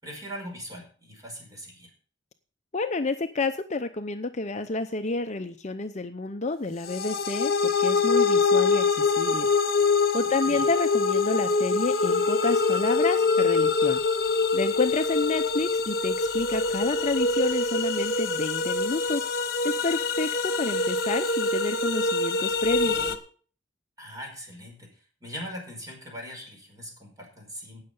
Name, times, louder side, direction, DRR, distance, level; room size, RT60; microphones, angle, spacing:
voice 1, 0.0-1.9 10.4-10.7 24.0-27.8, equal, 20° right, 0 dB, 5.2 m, -41 dB
voice 2, 2.7-9.5 10.1-14.0 14.5-19.3 19.6-23.0, left 3 dB, 35° left, 8 dB, 0.7 m, -29 dB
sound 1, 6.9-23.2, left 4 dB, 55° left, 1.4 m, -24 dB
17.5 x 6.7 x 5.4 m, 0.42 s
head